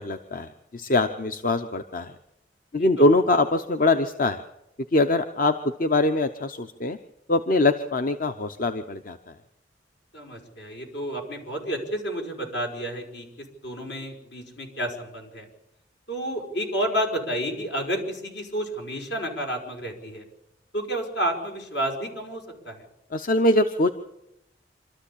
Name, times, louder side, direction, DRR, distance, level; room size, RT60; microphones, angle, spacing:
voice 1, 0.0-2.1 2.7-4.4 4.9-7.0 7.3-9.3 23.1-23.9, left 2 dB, 45° left, 8 dB, 0.8 m, -23 dB
voice 2, 10.1-13.3 13.6-15.5 16.1-20.2 20.7-22.8, right 1 dB, 75° left, 2 dB, 5.3 m, -30 dB
26.0 x 13.5 x 8.6 m, 0.85 s
head